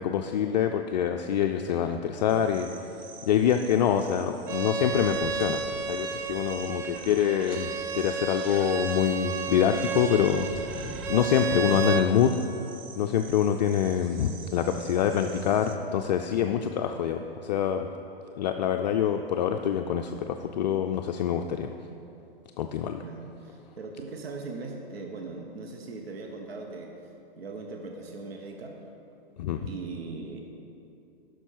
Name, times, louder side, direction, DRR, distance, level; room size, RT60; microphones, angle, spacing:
voice 1, 0.0-2.7 3.3-5.6 5.9-7.7 7.9-10.5 11.1-12.3 13.0-17.9 18.4-21.7 22.6-23.0 29.4-29.7, left 9 dB, 45° left, 5 dB, 0.4 m, -25 dB
sound 1, 2.3-15.8, right 5 dB, 50° right, 0.9 m, -48 dB
Bowed string instrument, 4.5-12.1, right 5 dB, 25° right, 0.5 m, -32 dB
sound 2, 5.0-7.2 7.5-11.2, left 3 dB, 25° left, 1.3 m, -47 dB
voice 2, 23.0-26.9 27.4-28.8 29.6-30.4, right 3 dB, 75° right, 2 dB, 1.0 m, -39 dB
9.8 x 6.3 x 4.5 m, 2.7 s
hypercardioid pair, 125°, 31 cm